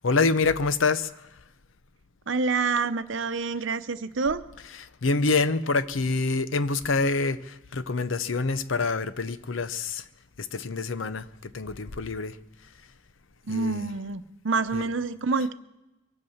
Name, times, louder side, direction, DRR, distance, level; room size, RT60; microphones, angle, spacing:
voice 1, 0.0-1.1 4.6-7.4 7.7-10.0 10.5-11.2 11.5-12.3 13.5-13.9 14.7-14.8, left 3 dB, 85° left, 0.7 m, -26 dB
voice 2, 2.3-4.4 13.5-15.5, right 4 dB, 75° right, 0.8 m, -27 dB
23.0 x 8.1 x 7.2 m
head